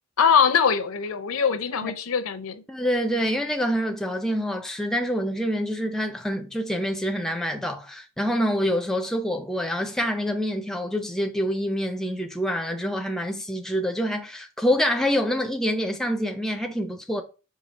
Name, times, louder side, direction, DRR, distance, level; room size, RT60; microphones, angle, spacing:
voice 1, 0.2-2.6, left 6 dB, 80° left, 0.6 m, -22 dB
voice 2, 2.7-17.2, equal, ahead, 0.4 m, -26 dB
4.8 x 2.7 x 4.1 m
head